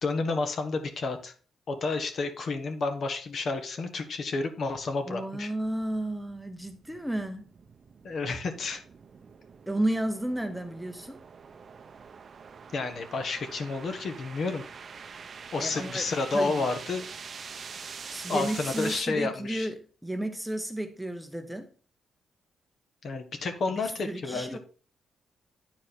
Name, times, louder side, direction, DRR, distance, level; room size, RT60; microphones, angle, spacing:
voice 1, 0.0-1.3 1.7-5.5 8.0-8.8 12.7-14.6 15.5-17.0 18.3-19.7 23.0-24.6, left 3 dB, 50° left, 1.4 m, -30 dB
voice 2, 5.1-7.5 9.7-11.2 15.6-16.0 16.3-16.7 18.1-21.7 24.1-24.6, right 1 dB, 5° right, 0.8 m, -32 dB
sound 1, 5.6-19.0, right 5 dB, 45° right, 0.7 m, -45 dB
9.5 x 4.7 x 4.4 m
cardioid pair, 115°, 0 cm